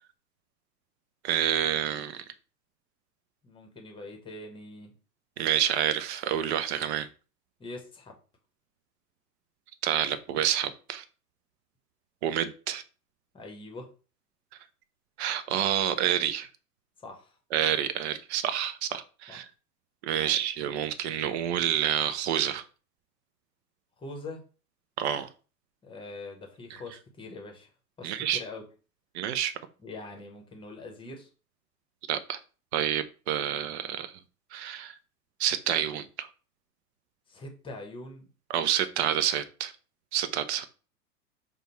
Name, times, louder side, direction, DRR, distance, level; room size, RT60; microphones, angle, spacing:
voice 1, 1.2-2.2 5.4-7.1 9.8-11.0 12.2-12.8 15.2-16.5 17.5-19.5 20.0-22.6 25.0-25.3 28.0-28.4 29.1-29.5 32.1-32.4 32.7-34.1 34.5-34.9 35.4-36.3 38.5-39.7 40.1-40.7, right 10 dB, 45° right, 13 dB, 0.6 m, -28 dB
voice 2, 3.4-4.9 7.6-8.2 13.3-13.9 17.0-17.4 19.3-19.4 20.1-20.4 24.0-24.4 25.8-27.7 28.0-28.6 29.8-31.3 37.3-38.3, left 2 dB, 10° left, 2 dB, 1.0 m, -43 dB
5.1 x 2.3 x 4.2 m, 0.36 s
hypercardioid pair, 105°, 49 cm